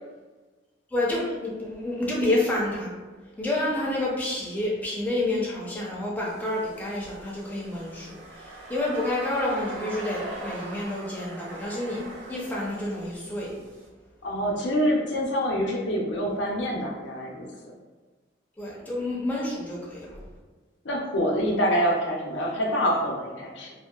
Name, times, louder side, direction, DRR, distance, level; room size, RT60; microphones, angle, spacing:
voice 1, 0.9-2.9 3.4-12.0 12.3-13.5 18.6-20.2, left 1 dB, 10° left, -5 dB, 0.6 m, -29 dB
sound 1, 6.3-13.8, right 2 dB, 80° right, 0.5 m, -41 dB
voice 2, 14.2-17.5 20.8-23.7, equal, 80° left, -1 dB, 0.6 m, -26 dB
2.6 x 2.1 x 2.3 m, 1.3 s
head